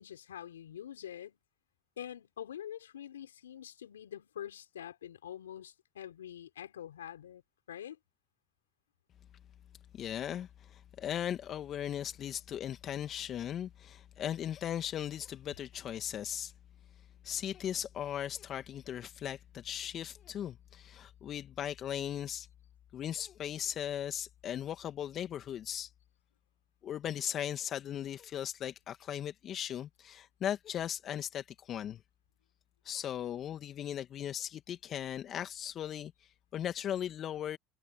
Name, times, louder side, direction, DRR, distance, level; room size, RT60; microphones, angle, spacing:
voice 1, 0.0-1.4 2.0-7.4 7.7-8.0, left 10 dB, 85° left, 5.0 m, -45 dB
voice 2, 9.9-16.5 17.2-22.5 22.9-25.9 26.8-32.0 32.8-37.6, left 10 dB, 45° left, 1.8 m, -38 dB
hypercardioid pair, 70°, 0 cm